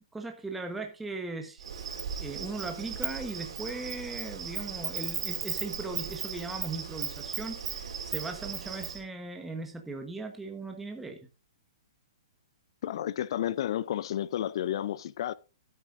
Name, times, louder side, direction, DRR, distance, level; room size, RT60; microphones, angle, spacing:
voice 1, 0.0-1.6 2.2-11.3, right 3 dB, 5° right, 1.1 m, -38 dB
Insect, 1.6-9.0, right 7 dB, 65° right, 3.5 m, -36 dB
voice 2, 12.8-15.3, left 11 dB, 55° left, 0.4 m, -31 dB
15.5 x 9.1 x 2.5 m
hypercardioid pair, 155°, 3 cm